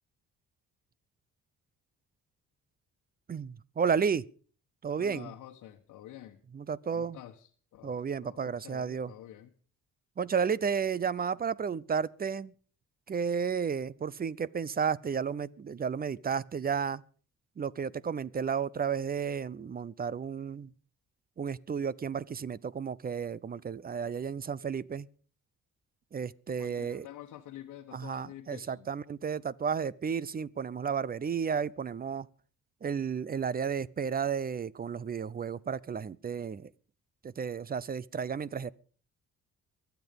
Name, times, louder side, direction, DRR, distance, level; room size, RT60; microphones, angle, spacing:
voice 1, 3.3-4.2 4.8-5.3 6.5-7.2 7.8-9.1 10.2-12.5 13.1-17.0 17.6-20.7 21.4-25.1 26.1-27.1 27.9-32.3 32.8-36.7 37.2-38.7, right 6 dB, 30° right, 0.6 m, -32 dB
voice 2, 5.0-6.4 6.9-9.5 26.5-28.9, left 12 dB, 85° left, 1.3 m, -48 dB
23.5 x 8.2 x 5.3 m
cardioid pair, 90°, 30 cm